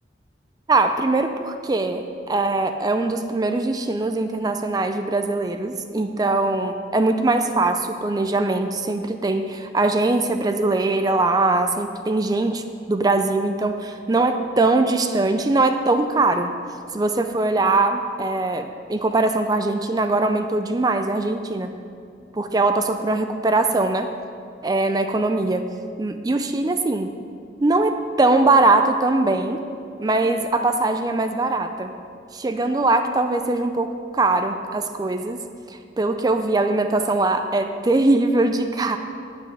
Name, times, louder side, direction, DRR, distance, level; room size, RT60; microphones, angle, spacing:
voice 1, 0.7-16.5 16.9-21.7 22.3-24.1 24.6-25.7 26.0-27.1 27.6-29.6 30.0-31.9 32.3-35.4 35.7-39.0, right 2 dB, 20° right, 7 dB, 0.3 m, -21 dB
8.2 x 7.9 x 5.6 m, 2.4 s
head